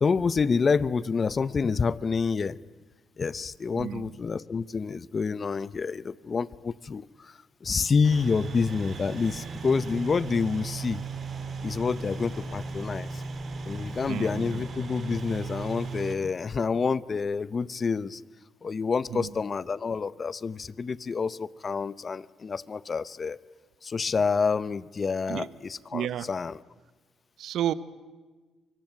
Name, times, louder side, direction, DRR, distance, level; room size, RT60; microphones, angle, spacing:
voice 1, 0.0-2.6 3.2-11.0 11.6-13.2 13.6-18.2 18.6-23.4 23.8-26.6, left 5 dB, 35° left, 19 dB, 0.7 m, -28 dB
voice 2, 3.7-4.2 14.1-14.6 19.1-19.3 25.3-25.5 25.9-26.3 27.4-27.7, right 11 dB, 70° right, 17 dB, 0.9 m, -31 dB
sound 1, 8.0-16.1, right 4 dB, 45° right, 3.3 m, -36 dB
24.5 x 21.5 x 9.2 m, 1.3 s
cardioid pair, 100°, 0 cm